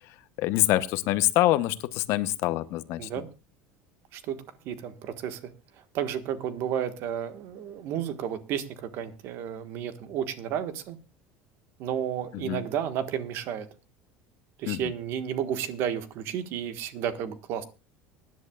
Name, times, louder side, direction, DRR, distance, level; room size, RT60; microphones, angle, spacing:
voice 1, 0.4-3.1 12.4-12.6 14.7-14.8, left 16 dB, 55° left, 14 dB, 0.9 m, -25 dB
voice 2, 4.1-5.5 5.9-11.0 11.8-13.7 14.6-17.6, right 9 dB, 50° right, 11 dB, 1.5 m, -32 dB
24.0 x 10.5 x 2.4 m, 0.28 s
cardioid pair, 165°, 5 cm